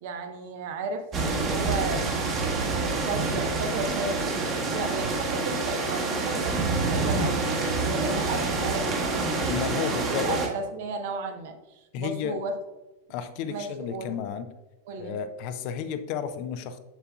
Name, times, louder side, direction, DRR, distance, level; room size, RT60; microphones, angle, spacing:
voice 1, 0.0-2.1 3.0-9.3 9.8-12.6 13.5-14.2 14.9-15.2, right 3 dB, 50° right, 6 dB, 0.8 m, -34 dB
sound 1, 1.1-10.5, right 3 dB, 30° right, 1.3 m, -27 dB
voice 2, 9.5-10.4 11.9-12.4 13.1-14.5 15.0-16.8, left 7 dB, 45° left, 10 dB, 0.5 m, -32 dB
7.2 x 6.7 x 2.3 m, 1.1 s
figure-of-eight pair, 90°, 0 cm